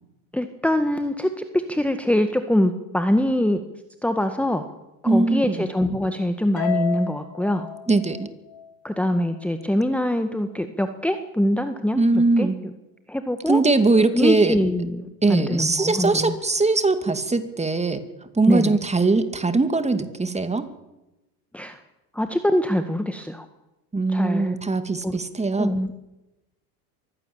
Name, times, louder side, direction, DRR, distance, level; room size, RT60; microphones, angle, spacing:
voice 1, 0.3-1.3 1.5-3.6 4.0-4.7 5.0-7.7 8.8-12.5 13.1-13.6 14.1-16.3 18.5-18.8 21.5-21.8 22.1-23.5 24.1-24.5 25.0-25.2 25.6-25.9, left 1 dB, 5° left, 8 dB, 1.7 m, -23 dB
voice 2, 5.1-5.7 7.9-8.3 12.0-12.5 13.5-14.6 15.2-18.0 18.3-20.7 23.9-25.7, right 3 dB, 15° right, 10 dB, 2.5 m, -21 dB
Harp, 6.6-9.0, left 6 dB, 50° left, 7.5 m, -32 dB
23.5 x 16.0 x 8.9 m, 1.0 s
hypercardioid pair, 85°, 45 cm